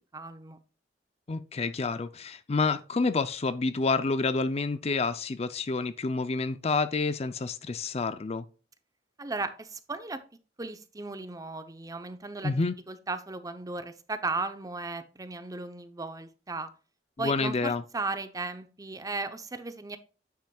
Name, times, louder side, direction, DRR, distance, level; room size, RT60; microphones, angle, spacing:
voice 1, 0.1-0.6 9.2-10.2 10.6-12.6 12.9-16.7 17.2-20.0, right 3 dB, 20° right, 0.7 m, -36 dB
voice 2, 1.3-8.4 12.4-12.7 17.2-17.8, left 3 dB, 35° left, 0.5 m, -28 dB
9.4 x 7.2 x 2.3 m
head